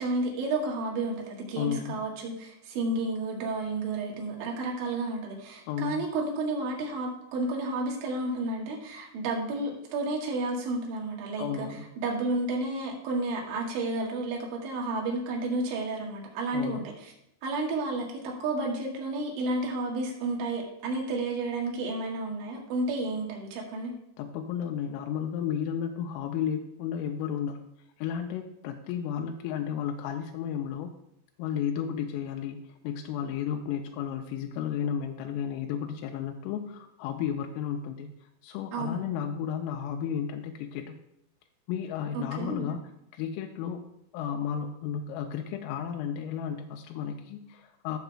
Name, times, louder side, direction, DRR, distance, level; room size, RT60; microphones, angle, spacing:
voice 1, 0.0-17.1 17.4-23.9 38.7-39.0 42.1-42.7, right 2 dB, 70° right, -1 dB, 3.7 m, -31 dB
voice 2, 1.6-2.0 5.7-6.1 11.4-11.9 16.5-16.9 24.2-27.7 28.0-30.9 31.4-32.6 32.8-38.1 38.4-41.0 41.7-42.8 43.1-43.8 44.1-48.0, left 8 dB, 90° left, 3 dB, 3.2 m, -33 dB
14.0 x 6.7 x 2.3 m, 0.79 s
omnidirectional pair, 5.7 m